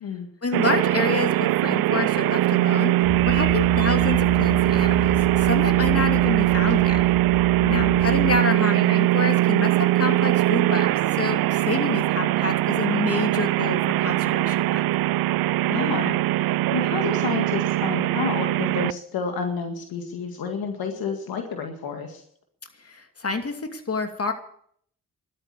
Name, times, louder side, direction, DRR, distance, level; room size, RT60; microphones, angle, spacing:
voice 1, 0.4-2.9 3.3-7.0 7.7-14.8 22.8-24.3, left 4 dB, 40° left, 6 dB, 2.7 m, -28 dB
sound 1, 0.5-18.9, right 16 dB, 75° right, 0.5 m, -21 dB
sound 2, 3.0-8.4, equal, 20° left, 4.5 m, -32 dB
voice 2, 7.6-8.0 15.7-16.2 16.7-22.2, left 6 dB, 80° left, 4 dB, 2.0 m, -30 dB
12.5 x 10.5 x 8.4 m, 0.63 s
supercardioid pair, 40°, 35 cm